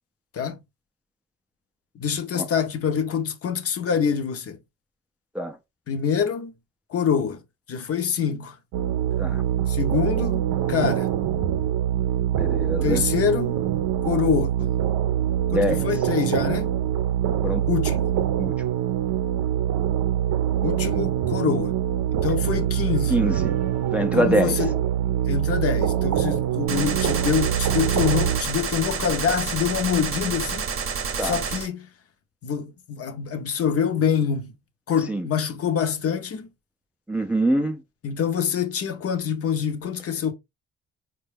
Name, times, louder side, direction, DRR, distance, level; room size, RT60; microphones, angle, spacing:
voice 1, 2.0-4.6 5.9-6.5 6.9-7.4 7.7-8.6 9.7-11.1 12.8-13.6 14.0-14.7 15.5-16.7 17.7-18.1 20.6-21.8 22.1-23.2 24.1-24.7 25.3-30.7 31.2-31.9 32.4-34.5 34.9-36.5 38.0-40.3, left 7 dB, 50° left, 0.7 m, -25 dB
sound 1, 8.7-28.4, right 11 dB, 80° right, 0.5 m, -24 dB
voice 2, 12.3-13.0 15.5-15.8 17.4-17.7 18.4-18.5 23.1-23.6 23.9-24.6 31.2-31.4 35.1-35.3 37.1-37.8, right 1 dB, 5° right, 0.3 m, -24 dB
Gunshot gunfire, 26.7-31.7, right 6 dB, 45° right, 0.7 m, -29 dB
4.2 x 2.2 x 3.3 m
cardioid pair, 90°, 30 cm